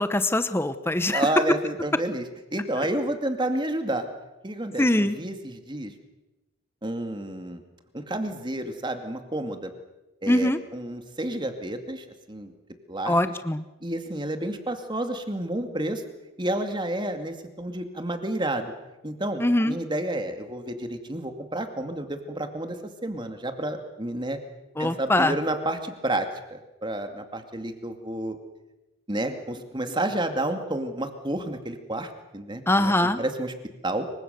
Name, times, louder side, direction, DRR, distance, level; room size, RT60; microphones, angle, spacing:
voice 1, 0.0-1.3 4.8-5.2 10.3-10.6 13.1-13.6 19.4-19.8 24.8-25.3 32.7-33.2, left 1 dB, 10° left, 11 dB, 0.9 m, -22 dB
voice 2, 1.1-2.2 2.5-4.1 4.4-5.9 6.8-7.6 7.9-9.7 10.2-12.5 12.9-13.3 13.8-16.0 16.4-18.7 19.0-24.4 24.8-28.4 29.1-33.5 33.8-34.1, right 1 dB, 25° right, 6 dB, 2.3 m, -30 dB
26.0 x 24.0 x 6.8 m, 1.0 s
head